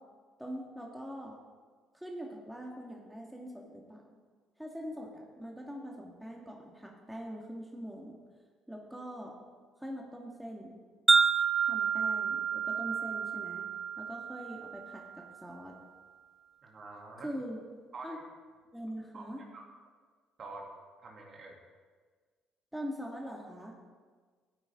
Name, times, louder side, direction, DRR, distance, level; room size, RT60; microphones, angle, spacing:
voice 1, 0.4-1.4 1.9-4.0 4.6-8.2 8.7-9.4 9.8-10.8 11.6-13.7 14.0-15.8 17.2-17.6 18.0-18.2 18.7-19.4 22.7-23.7, equal, 5° right, -1 dB, 2.0 m, -43 dB
Wind chime, 11.1-15.4, right 5 dB, 25° right, 0.8 m, -29 dB
voice 2, 16.6-17.3 17.9-18.2 19.1-19.3 19.5-19.6 20.4-20.6 21.0-21.6, right 3 dB, 50° right, -1 dB, 2.9 m, -46 dB
14.0 x 8.9 x 3.8 m, 1.5 s
hypercardioid pair, 60°, 0 cm